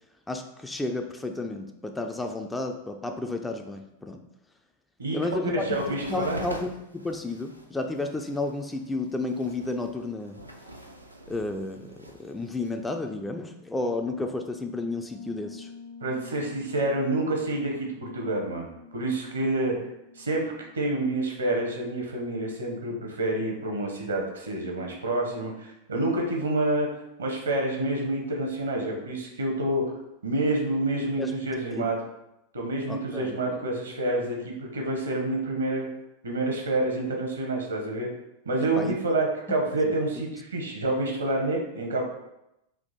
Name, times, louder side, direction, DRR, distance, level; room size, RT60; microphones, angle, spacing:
voice 1, 0.3-4.2 5.1-5.5 5.9-10.4 11.3-15.7 31.2-31.4 31.7-31.9 32.9-33.5 38.8-39.0 39.8-39.9, left 2 dB, 10° left, 4 dB, 0.3 m, -32 dB
voice 2, 5.5-6.4 16.0-19.7 20.2-26.9 27.2-29.8 30.2-32.0 32.5-35.9 36.2-38.1 38.5-42.0, right 2 dB, 70° right, 1 dB, 0.8 m, -28 dB
sound 1, 5.7-13.0, right 1 dB, 85° right, 0.4 m, -43 dB
Piano, 15.0-23.5, left 5 dB, 55° left, 0.8 m, -49 dB
3.5 x 2.5 x 3.9 m, 0.86 s
figure-of-eight pair, 90°, 0 cm